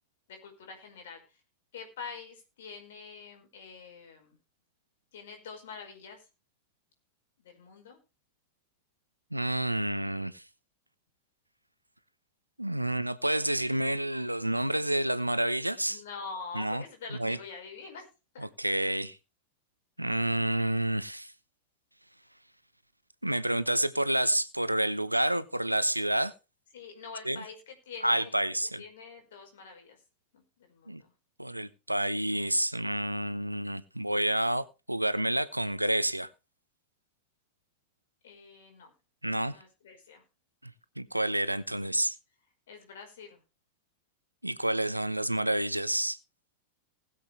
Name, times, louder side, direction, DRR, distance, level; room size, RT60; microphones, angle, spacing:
voice 1, 0.3-1.4 1.7-4.4 5.1-6.3 7.4-8.0 15.9-18.1 18.3-18.5 26.7-28.3 28.8-30.0 30.3-31.1 38.2-38.9 39.5-40.2 42.7-43.4, left 5 dB, 60° left, 5.1 m, -45 dB
voice 2, 9.3-10.4 12.6-16.0 16.5-16.8 17.1-17.4 18.4-19.2 20.0-21.3 23.2-26.3 27.2-27.4 28.0-28.8 30.9-31.0 31.4-36.3 39.2-39.6 40.6-40.7 41.0-42.1 44.4-46.2, right 1 dB, 85° right, 0.9 m, -29 dB
20.0 x 7.6 x 3.4 m
figure-of-eight pair, 90°, 0 cm